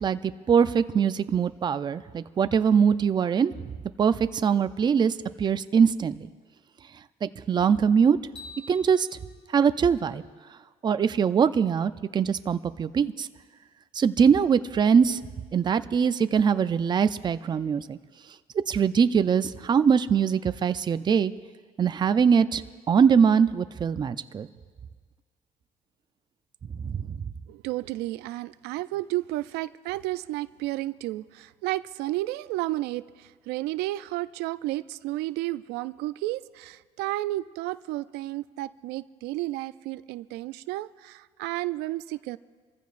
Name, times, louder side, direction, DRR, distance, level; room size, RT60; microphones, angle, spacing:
voice 1, 0.0-3.5 4.0-6.3 7.2-8.2 8.7-9.1 9.5-10.2 10.8-13.3 13.9-15.2 15.5-18.0 18.7-21.3 21.8-22.6 22.9-24.5 26.7-27.2, right 7 dB, 25° right, 12 dB, 0.5 m, -22 dB
sound 1, 8.4-10.6, left 2 dB, 35° left, 5.6 m, -48 dB
voice 2, 27.5-42.4, right 17 dB, 85° right, 14 dB, 0.4 m, -32 dB
27.5 x 14.5 x 2.5 m, 1.5 s
cardioid pair, 115°, 17 cm